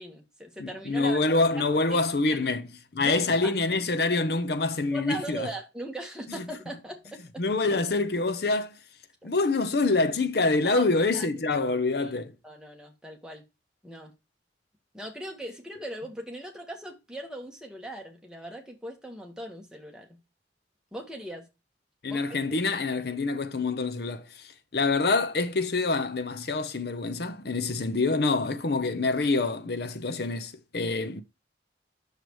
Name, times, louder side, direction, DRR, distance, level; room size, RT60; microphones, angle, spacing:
voice 1, 0.0-1.2 1.6-2.4 3.0-3.5 4.9-7.4 9.2-9.3 10.6-10.9 11.1-11.3 12.0-12.1 12.4-13.4 13.8-14.1 14.9-20.1 20.9-21.4 22.1-22.2, right 1 dB, 5° right, 1.5 m, -39 dB
voice 2, 0.6-5.5 6.3-6.4 7.4-8.7 9.2-12.3 22.0-31.2, left 3 dB, 60° left, 0.7 m, -26 dB
7.8 x 6.7 x 3.1 m
head